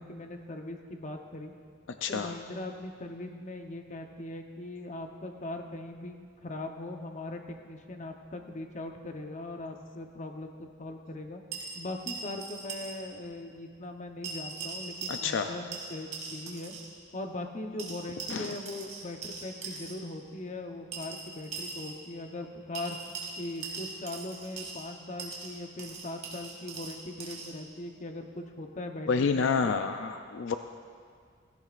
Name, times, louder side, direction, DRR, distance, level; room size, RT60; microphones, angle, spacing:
voice 1, 0.0-1.5 2.1-6.2 6.4-11.4 11.8-16.7 17.1-23.0 23.4-29.7, left 2 dB, 40° left, 4 dB, 0.9 m, -40 dB
voice 2, 2.0-2.3 15.1-15.5 18.3-18.6 29.1-30.5, left 5 dB, 75° left, 7 dB, 0.4 m, -28 dB
sound 1, 11.5-13.0 13.2-13.3 14.2-15.5 15.7-16.9 17.8-19.9 20.9-22.0 22.7-24.9 25.2-27.5, right 4 dB, 40° right, 2.2 m, -40 dB
17.0 x 15.5 x 2.5 m, 2.1 s
head